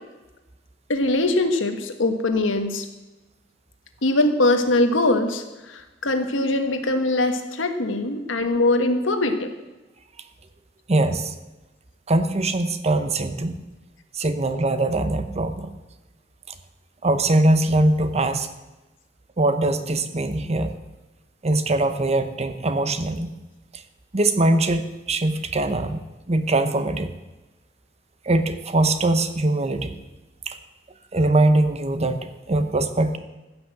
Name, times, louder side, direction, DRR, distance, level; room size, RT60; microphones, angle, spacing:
voice 1, 0.9-2.9 4.0-9.6, left 2 dB, 85° left, 7 dB, 1.4 m, -22 dB
voice 2, 10.9-11.3 12.1-13.5 14.1-15.7 16.5-16.6 17.0-18.5 19.4-20.7 21.4-23.3 23.7-23.8 24.1-26.0 26.3-27.1 28.2-29.9 30.5-30.6 31.1-33.2, right 2 dB, 35° right, 10 dB, 0.9 m, -22 dB
15.0 x 6.2 x 7.5 m, 1.1 s
head